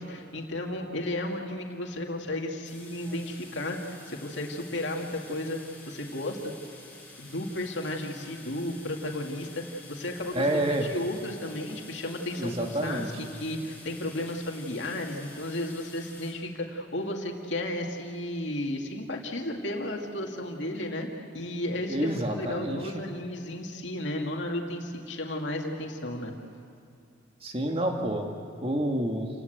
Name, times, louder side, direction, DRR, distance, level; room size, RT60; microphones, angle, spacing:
voice 1, 0.0-5.6 5.8-6.5 7.2-10.6 10.9-13.0 13.3-21.1 21.3-26.3, left 1 dB, 70° left, 1 dB, 2.3 m, -33 dB
sound 1, 2.6-16.3, left 3 dB, 10° left, 6.4 m, -49 dB
voice 2, 10.3-10.9 12.4-13.1 21.9-23.0 27.4-28.3 28.6-29.3, right 1 dB, 30° right, 2 dB, 2.0 m, -28 dB
29.5 x 18.5 x 8.1 m, 2.5 s
head